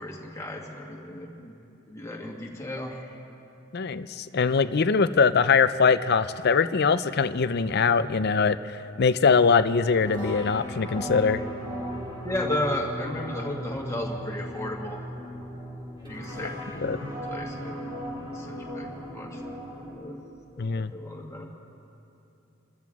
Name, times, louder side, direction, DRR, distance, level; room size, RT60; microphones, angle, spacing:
voice 1, 0.0-1.6 1.9-3.2 12.2-15.0 16.1-16.6 17.3-17.9 18.3-18.9 19.1-19.4 19.9-20.2 20.5-21.5, left 1 dB, 15° left, -2 dB, 2.0 m, -34 dB
voice 2, 3.7-8.6 9.0-11.4 16.8-17.0 20.6-20.9, left 5 dB, 55° left, 12 dB, 0.5 m, -22 dB
sound 1, 9.9-20.0, equal, 25° right, 4.6 m, -37 dB
29.0 x 13.5 x 3.6 m, 2.8 s
head